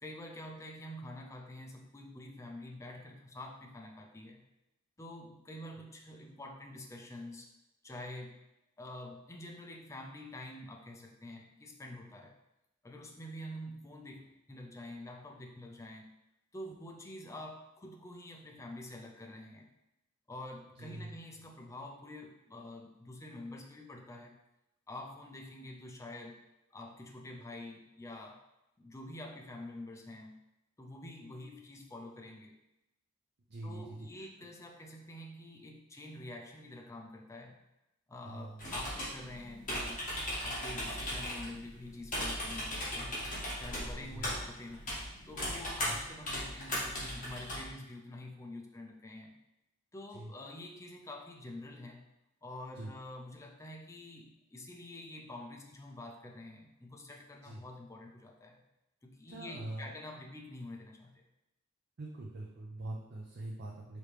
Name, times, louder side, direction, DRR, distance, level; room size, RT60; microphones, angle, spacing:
voice 1, 0.0-4.4 5.0-7.5 7.8-8.4 8.8-12.4 12.8-16.1 16.5-19.7 20.3-24.4 24.9-26.4 26.7-28.4 28.8-30.4 30.8-32.5 33.6-37.6 38.1-40.1 40.4-43.2 43.6-44.9 45.3-49.4 49.9-52.0 52.4-58.6 59.0-61.2, left 1 dB, 15° left, 1 dB, 0.5 m, -47 dB
voice 2, 20.8-21.1 33.5-34.1 38.2-38.6 44.0-44.3 45.7-46.0 50.1-50.3 52.7-52.9 57.4-57.6 59.3-59.9 62.0-64.0, right 2 dB, 50° right, -3 dB, 0.5 m, -43 dB
sound 1, 38.6-47.6, equal, 40° left, 1.6 m, -38 dB
5.0 x 3.0 x 3.3 m, 0.90 s
head